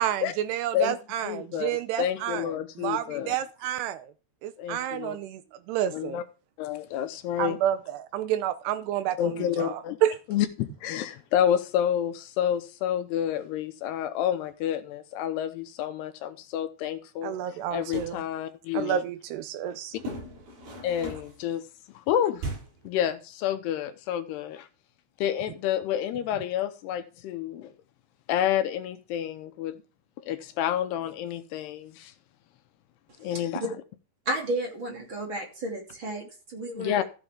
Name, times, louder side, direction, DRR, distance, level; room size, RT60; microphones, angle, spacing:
voice 1, 0.0-4.1 4.4-5.4 5.7-6.2 7.4-10.2 17.2-18.2 18.7-19.9, right 11 dB, 80° right, 2.5 m, -30 dB
voice 2, 1.2-3.4 4.6-5.2 5.9-6.2 6.6-7.6 9.2-10.0 10.3-17.4 17.7-19.0 20.8-21.7 21.9-22.5 22.8-24.7 25.2-27.7 28.3-29.8 30.3-32.1 33.2-33.6 36.8-37.0, left 10 dB, 80° left, 2.7 m, -29 dB
sound 1, 17.7-18.2 20.0-21.4 22.4-22.9, right 1 dB, 55° right, 7.4 m, -37 dB
voice 3, 34.2-37.0, right 1 dB, 35° right, 2.8 m, -32 dB
14.5 x 7.9 x 3.6 m
omnidirectional pair, 5.0 m